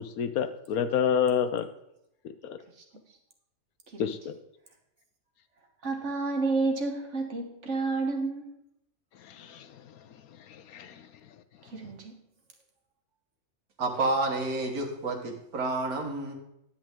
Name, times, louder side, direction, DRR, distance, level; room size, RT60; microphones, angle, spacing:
voice 1, 0.0-1.7 2.4-2.6 4.0-4.4 9.2-10.0 10.5-11.1, left 8 dB, 70° left, 10 dB, 1.1 m, -29 dB
voice 2, 5.8-8.5 11.6-12.1, right 3 dB, 50° right, 3 dB, 1.7 m, -30 dB
voice 3, 13.8-16.3, right 2 dB, 70° right, 3 dB, 1.9 m, -29 dB
10.0 x 8.4 x 3.6 m, 0.82 s
omnidirectional pair, 1.6 m